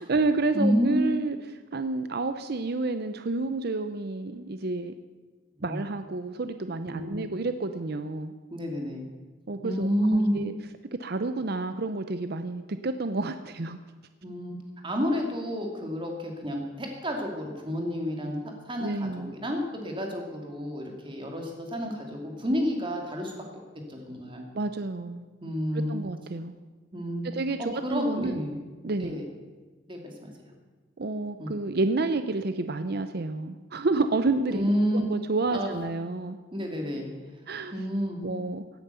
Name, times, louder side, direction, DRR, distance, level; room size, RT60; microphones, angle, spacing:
voice 1, 0.0-4.9 5.6-8.3 9.5-10.5 11.0-13.8 18.8-19.4 24.5-25.3 25.7-26.5 27.2-28.4 28.8-29.2 31.0-36.4 37.5-37.7 38.2-38.6, right 3 dB, 55° right, 10 dB, 0.7 m, -30 dB
voice 2, 0.5-1.2 5.7-5.8 6.9-7.2 8.5-9.1 9.6-10.4 14.2-14.6 14.8-23.3 23.9-24.4 25.4-26.0 26.9-27.3 27.6-28.5 29.0-29.2 29.9-30.3 31.4-31.5 34.5-35.1 35.5-35.7 36.5-37.1 37.7-38.2, equal, 25° right, 2 dB, 2.7 m, -29 dB
17.0 x 9.3 x 6.9 m, 1.3 s
head